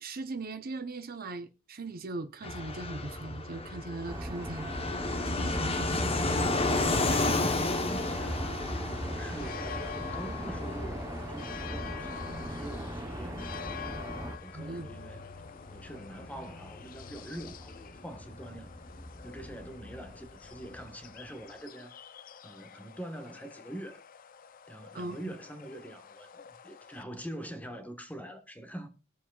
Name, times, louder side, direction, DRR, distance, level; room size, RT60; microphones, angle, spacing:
voice 1, 0.0-4.7 5.3-6.1 7.1-7.5 14.5-14.9 24.9-25.3, right 3 dB, 50° right, 0.8 m, -39 dB
Fixed-wing aircraft airplane, 2.4-20.8, left 2 dB, 30° left, 1.0 m, -34 dB
sound 1, 4.1-14.4, right 1 dB, 15° right, 0.9 m, -38 dB
voice 2, 6.9-8.5 8.9-13.6 13.8-15.2 15.7-18.7 19.2-21.9 22.4-24.0 24.7-28.9, right 1 dB, 10° left, 1.3 m, -44 dB
sound 2, 8.8-27.0, left 9 dB, 45° left, 0.5 m, -47 dB
21.0 x 7.2 x 2.4 m
head